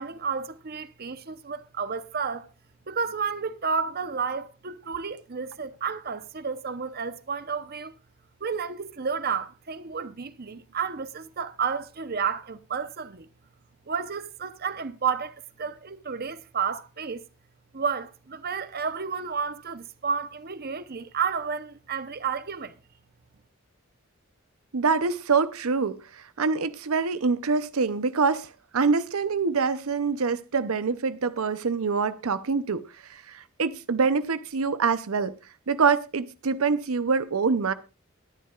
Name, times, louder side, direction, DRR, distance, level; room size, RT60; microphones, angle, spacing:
voice 1, 0.0-2.5 2.9-7.9 8.4-13.3 13.9-17.2 17.7-22.8, right 6 dB, 45° right, 0.8 m, -31 dB
voice 2, 24.7-32.8 33.1-35.3 35.7-37.7, right 5 dB, 90° right, 0.7 m, -25 dB
21.5 x 10.0 x 2.4 m
head